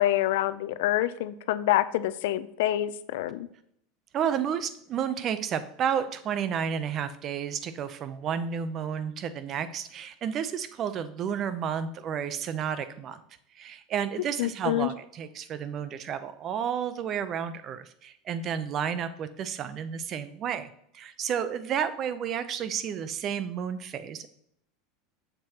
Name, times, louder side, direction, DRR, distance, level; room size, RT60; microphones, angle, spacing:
voice 1, 0.0-3.5 14.4-14.9, left 14 dB, 75° left, 14 dB, 0.4 m, -26 dB
voice 2, 4.1-13.2 13.5-24.3, right 8 dB, 40° right, 13 dB, 0.6 m, -31 dB
7.4 x 6.8 x 2.9 m, 0.71 s
supercardioid pair, 115°, 0 cm